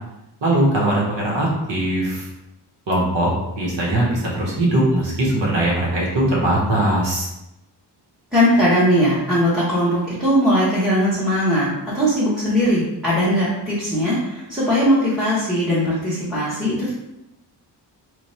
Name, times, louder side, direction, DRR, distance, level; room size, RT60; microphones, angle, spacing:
voice 1, 0.4-2.3 2.9-7.3, right 1 dB, 85° right, -4 dB, 1.2 m, -20 dB
voice 2, 8.3-11.7 11.9-17.0, equal, ahead, -10 dB, 0.8 m, -19 dB
3.1 x 2.2 x 4.2 m, 0.90 s
wide cardioid pair, 170°, 42 cm